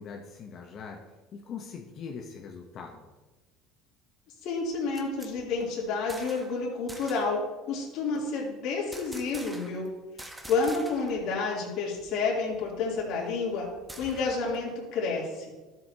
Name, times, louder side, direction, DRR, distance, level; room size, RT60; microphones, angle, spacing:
voice 1, 0.0-3.1, left 6 dB, 45° left, 3 dB, 0.9 m, -42 dB
voice 2, 4.4-7.4 7.7-9.9 10.5-13.7 14.0-15.5, left 4 dB, 65° left, -3 dB, 3.1 m, -30 dB
sound 1, 4.6-6.6 6.9-7.4 8.9-9.9 10.2-11.3 11.5-11.6 12.0-14.6, right 1 dB, 10° right, 1.0 m, -47 dB
12.5 x 7.6 x 2.8 m, 1.2 s
supercardioid pair, 100°, 0 cm